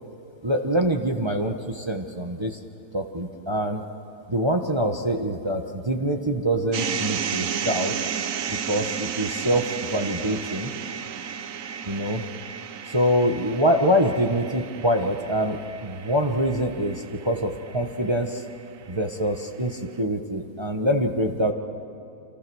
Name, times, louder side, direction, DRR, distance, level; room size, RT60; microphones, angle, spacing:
voice 1, 0.4-2.6 2.9-3.8 4.3-7.9 8.5-10.7 11.8-12.2 12.9-18.4 18.9-21.5, equal, 20° right, 3 dB, 1.2 m, -25 dB
sound 1, 6.7-18.9, right 7 dB, 60° right, 1.2 m, -33 dB
29.0 x 27.0 x 6.4 m, 2.7 s
omnidirectional pair, 1.6 m